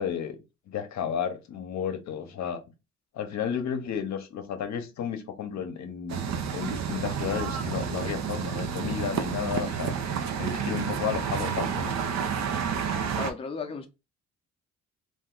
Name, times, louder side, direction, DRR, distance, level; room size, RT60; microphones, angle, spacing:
voice 1, 0.0-2.6 3.1-9.9 10.4-11.9, left 8 dB, 65° left, 0.7 m, -32 dB
sound 1, 6.1-13.3, right 7 dB, 60° right, 0.6 m, -30 dB
voice 2, 13.1-13.9, left 5 dB, 20° left, 0.6 m, -34 dB
2.6 x 2.2 x 3.7 m
cardioid pair, 90°, 30 cm